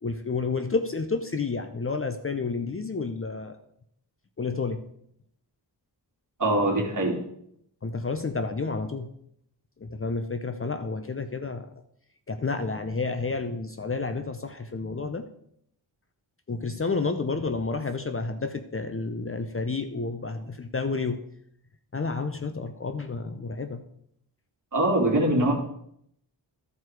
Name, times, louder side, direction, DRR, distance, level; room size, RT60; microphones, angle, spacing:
voice 1, 0.0-3.6 4.4-4.8 7.8-9.1 9.8-11.7 12.3-15.3 16.5-21.2 21.9-23.8, left 4 dB, 30° left, 8 dB, 0.6 m, -30 dB
voice 2, 6.4-7.2 24.7-25.5, right 1 dB, 45° right, -1 dB, 2.7 m, -23 dB
13.5 x 4.7 x 4.7 m, 0.70 s
wide cardioid pair, 115°, 42 cm